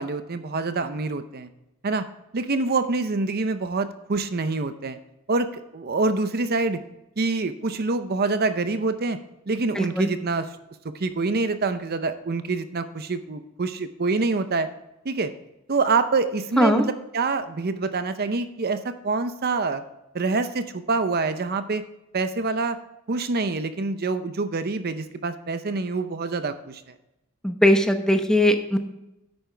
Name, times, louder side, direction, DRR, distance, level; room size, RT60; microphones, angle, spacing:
voice 1, 0.0-1.5 1.8-2.0 2.3-5.0 5.3-6.8 7.2-9.2 9.5-10.5 10.8-14.7 15.0-15.3 15.7-19.8 20.1-21.8 22.1-22.8 23.1-26.9, right 3 dB, 45° right, 10 dB, 0.6 m, -26 dB
voice 2, 9.7-10.1 16.6-16.8 27.4-28.8, left 1 dB, 5° left, 6 dB, 0.8 m, -19 dB
10.5 x 8.7 x 3.3 m, 0.91 s
head